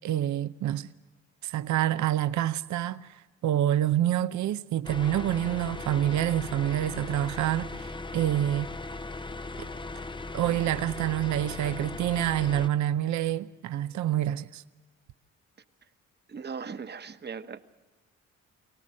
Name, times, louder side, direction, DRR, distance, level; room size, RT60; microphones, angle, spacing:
voice 1, 0.0-0.9 1.4-8.7 9.6-9.7 10.3-14.6, right 12 dB, 70° right, 0.7 m, -27 dB
sound 1, 4.8-12.7, left 2 dB, 15° left, 0.6 m, -38 dB
voice 2, 16.3-17.6, right 5 dB, 35° right, 1.1 m, -38 dB
24.5 x 18.0 x 6.3 m
cardioid pair, 90°, 30 cm